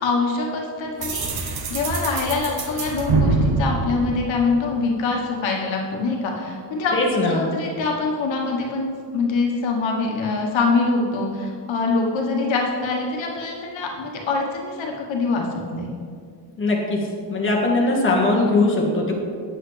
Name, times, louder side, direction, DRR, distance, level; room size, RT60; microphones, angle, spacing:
voice 1, 0.0-7.0 7.3-15.9, left 3 dB, 75° left, 0 dB, 1.2 m, -24 dB
sound 1, 1.0-4.9, right 3 dB, 55° right, 0.9 m, -24 dB
voice 2, 6.9-7.4 16.6-17.0 17.3-19.1, left 2 dB, 25° left, -2 dB, 1.4 m, -20 dB
8.8 x 8.0 x 3.2 m, 2.2 s
cardioid pair, 140°, 46 cm